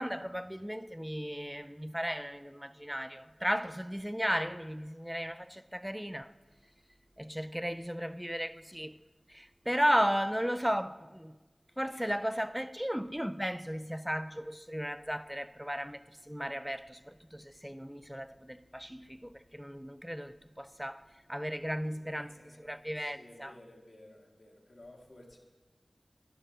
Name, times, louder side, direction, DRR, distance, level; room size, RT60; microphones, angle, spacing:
voice 1, 0.0-6.3 7.2-9.0 9.3-11.4 11.8-16.0 16.3-21.0 21.3-23.5, equal, 5° right, 0.3 m, -35 dB
voice 2, 21.8-25.4, left 1 dB, 65° left, 1.5 m, -56 dB
10.0 x 6.5 x 4.9 m
wide cardioid pair, 65°, 0 cm